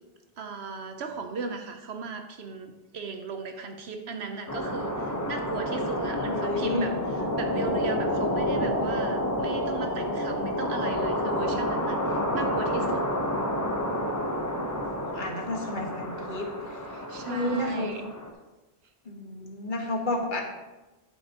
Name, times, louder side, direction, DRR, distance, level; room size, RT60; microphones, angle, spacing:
voice 1, 0.4-13.0 16.9-18.0, right 4 dB, 75° right, 5 dB, 1.0 m, -36 dB
sound 1, 4.5-18.3, equal, 20° left, 0.8 m, -29 dB
voice 2, 6.2-6.9 14.9-16.8 17.3-17.9 19.0-20.4, left 2 dB, 50° left, 1 dB, 1.6 m, -31 dB
11.5 x 8.6 x 2.9 m, 1.1 s
omnidirectional pair, 1.1 m